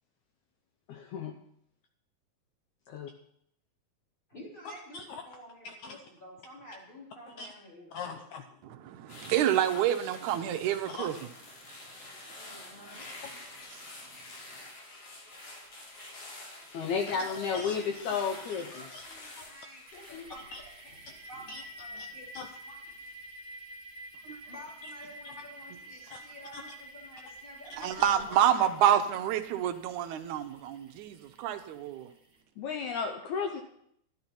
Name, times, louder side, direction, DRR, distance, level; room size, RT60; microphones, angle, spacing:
voice 1, 0.9-1.3 2.9-3.1 4.9-5.2 5.7-6.0 7.4-7.5 7.9-8.4 10.9-11.1 16.7-19.0 20.5-20.6 21.5-21.6 22.3-22.5 25.2-25.3 26.1-26.2 26.5-26.6 28.0-28.1 32.6-33.6, left 6 dB, 75° left, 1.8 m, -34 dB
voice 2, 4.3-8.2 12.3-13.1 16.8-18.4 18.7-20.9 21.3-22.3 22.6-23.0 24.5-28.9, equal, 15° left, 2.8 m, -50 dB
voice 3, 8.6-11.2 13.7-13.8 24.3-24.4 27.7-32.1, right 10 dB, 75° right, 1.9 m, -28 dB
sound 1, 9.1-22.4 22.8-23.1, left 2 dB, 45° left, 3.2 m, -48 dB
sound 2, 19.9-32.4, right 1 dB, 30° right, 1.9 m, -49 dB
12.0 x 11.0 x 4.4 m
omnidirectional pair, 4.2 m